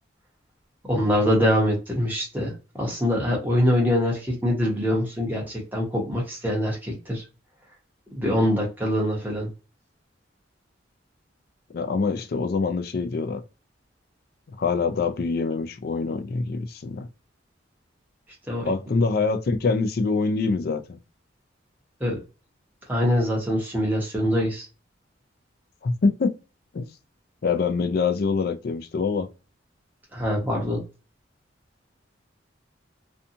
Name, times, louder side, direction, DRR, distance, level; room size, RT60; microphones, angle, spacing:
voice 1, 0.8-7.2 8.2-9.5 18.5-18.7 22.0-22.2 22.9-24.7 30.1-30.8, equal, 10° right, 1.0 m, -24 dB
voice 2, 11.7-13.4 14.6-17.1 18.6-21.0 25.8-26.3 26.7-26.9 27.4-29.3, left 4 dB, 50° left, 0.4 m, -25 dB
2.6 x 2.3 x 2.7 m
head